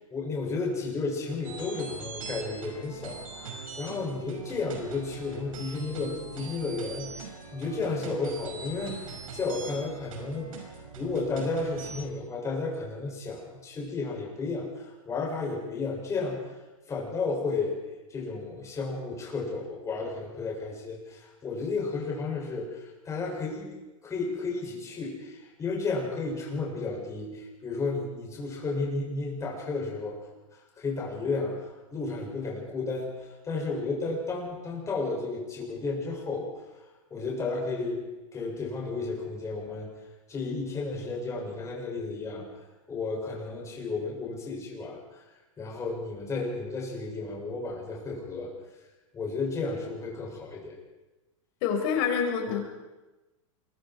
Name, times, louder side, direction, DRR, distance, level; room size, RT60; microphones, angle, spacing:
voice 1, 0.1-10.7 11.0-16.4 16.9-17.7 18.1-23.7 24.0-30.2 30.8-31.6 31.9-36.5 37.1-38.0 38.3-39.9 40.3-42.4 42.9-45.2 45.6-48.5 49.1-50.8, left 3 dB, 15° left, -2 dB, 7.3 m, -33 dB
sound 1, 1.4-12.1, right 5 dB, 85° right, 5.5 m, -42 dB
voice 2, 51.6-52.7, left 7 dB, 50° left, 3 dB, 5.7 m, -27 dB
28.0 x 23.5 x 4.8 m, 1.1 s
supercardioid pair, 140°, 17 cm